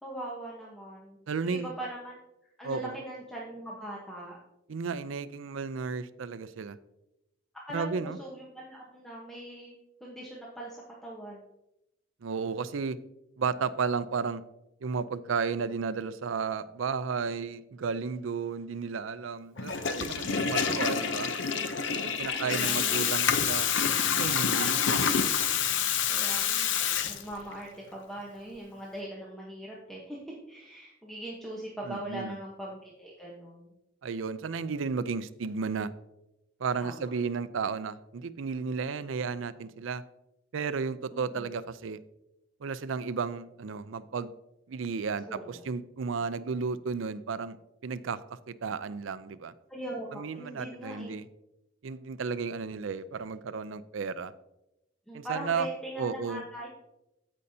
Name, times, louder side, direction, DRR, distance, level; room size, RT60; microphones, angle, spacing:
voice 1, 0.0-1.2 1.4-2.2 2.6-4.4 7.7-9.8 10.0-11.4 22.1-23.1 26.1-26.8 27.1-33.7 36.8-37.1 41.1-41.5 45.3-45.6 49.7-51.2 55.1-56.7, right 1 dB, ahead, -4 dB, 1.0 m, -41 dB
voice 2, 1.3-1.7 2.6-3.0 4.7-6.8 7.7-8.2 12.2-13.0 13.4-14.4 14.8-21.3 22.2-23.7 24.2-25.0 31.9-32.4 34.0-35.9 36.6-40.0 40.5-42.0 42.6-44.3 44.7-47.6 47.8-49.5 50.1-51.2 51.8-54.3 55.1-55.7 56.0-56.4, right 5 dB, 75° right, 15 dB, 0.4 m, -33 dB
Water tap faucet / Toilet flush, 19.6-27.6, left 7 dB, 65° left, 0.6 m, -27 dB
15.0 x 5.4 x 2.7 m, 0.91 s
head